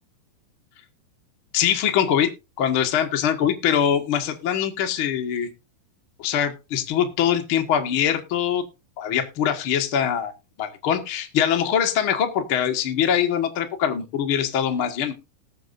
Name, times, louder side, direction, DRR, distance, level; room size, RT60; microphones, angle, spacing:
voice 1, 1.5-2.3 2.6-5.5 6.2-8.6 9.0-10.3 10.6-15.2, left 9 dB, 55° left, 5 dB, 1.6 m, -23 dB
20.0 x 7.0 x 2.6 m, 0.27 s
omnidirectional pair, 4.3 m